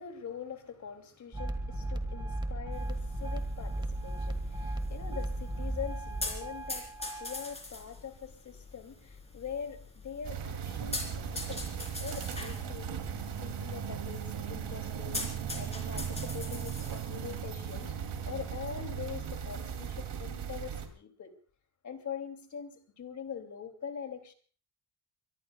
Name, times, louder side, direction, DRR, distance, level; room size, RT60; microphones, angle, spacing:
voice 1, 0.0-11.7 12.0-13.0 13.4-15.2 15.5-17.9 18.2-21.3 21.8-24.3, left 7 dB, 35° left, 7 dB, 2.6 m, -43 dB
sound 1, 1.3-7.5, right 1 dB, 10° right, 1.6 m, -36 dB
sound 2, 2.7-20.2, left 2 dB, 15° left, 3.5 m, -44 dB
sound 3, 10.2-20.9, right 8 dB, 60° right, 2.8 m, -37 dB
23.5 x 23.0 x 2.3 m, 0.40 s
cardioid pair, 180°, 47 cm